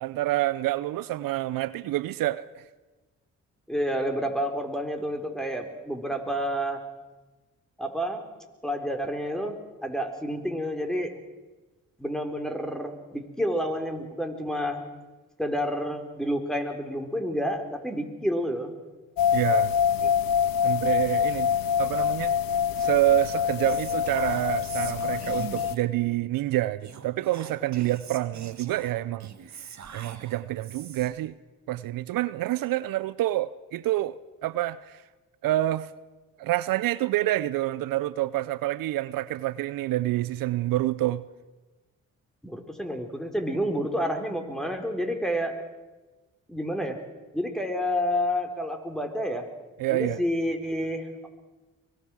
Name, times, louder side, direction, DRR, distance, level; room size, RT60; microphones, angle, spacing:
voice 1, 0.0-2.5 19.3-19.7 20.6-21.5 21.8-22.3 22.8-29.3 29.9-31.3 31.7-34.2 34.4-35.0 35.4-35.9 36.4-41.2 49.8-50.2, right 15 dB, 75° right, 0.6 m, -27 dB
voice 2, 3.7-6.8 7.8-8.3 8.6-9.6 9.8-11.2 12.0-14.8 15.4-18.7 20.0-20.1 42.4-45.6 46.5-47.0 47.3-49.5 49.9-51.3, equal, ahead, 3.9 m, -29 dB
sound 1, 19.2-25.7, left 8 dB, 85° left, 0.8 m, -25 dB
Whispering, 23.6-26.0 26.8-31.2, right 7 dB, 55° right, 1.9 m, -44 dB
23.5 x 19.0 x 6.3 m
supercardioid pair, 50°, 34 cm